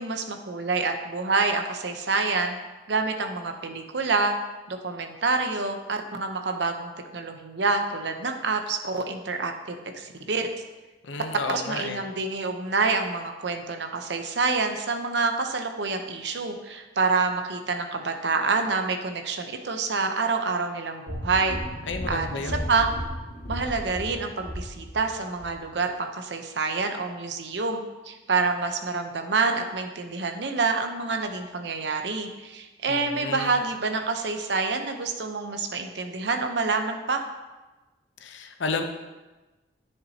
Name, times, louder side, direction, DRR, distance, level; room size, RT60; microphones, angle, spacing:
voice 1, 0.0-2.6 2.9-4.4 4.7-10.4 11.5-21.6 22.1-22.9 23.5-37.2, right 4 dB, 70° right, 5 dB, 0.8 m, -27 dB
voice 2, 11.0-12.0 21.9-22.7 32.9-33.5 38.2-38.8, left 3 dB, 85° left, 6 dB, 0.7 m, -32 dB
sound 1, 21.1-25.1 25.4-25.5, equal, 55° left, 2.0 m, -34 dB
9.9 x 7.1 x 2.8 m, 1.1 s
head